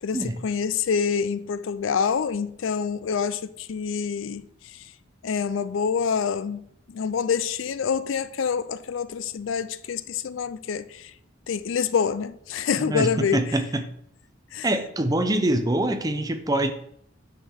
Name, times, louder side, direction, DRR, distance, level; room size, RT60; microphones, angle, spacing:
voice 1, 0.0-4.8 5.2-11.1 11.5-13.6 14.5-14.7, left 6 dB, 75° left, 0.4 m, -27 dB
voice 2, 12.9-13.9 14.6-16.7, right 1 dB, 20° right, 0.6 m, -24 dB
9.3 x 6.3 x 3.6 m
head